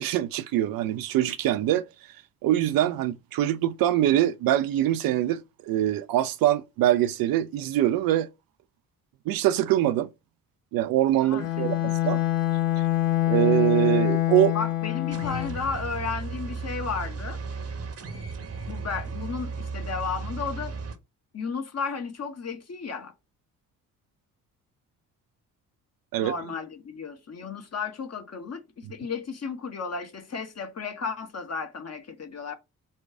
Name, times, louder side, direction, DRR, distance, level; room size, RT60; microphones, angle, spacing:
voice 1, 0.0-1.9 2.4-8.3 9.3-10.1 10.7-12.2 13.2-14.6 26.1-26.3, right 13 dB, 50° right, 0.5 m, -23 dB
voice 2, 11.2-11.9 14.5-17.4 18.6-20.7 21.3-23.1 26.2-32.5, left 5 dB, 35° left, 1.0 m, -34 dB
Bowed string instrument, 11.4-15.7, left 14 dB, 65° left, 1.4 m, -25 dB
sound 1, 15.1-20.9, right 4 dB, 35° right, 0.9 m, -35 dB
4.2 x 2.3 x 4.7 m
figure-of-eight pair, 40°, 45 cm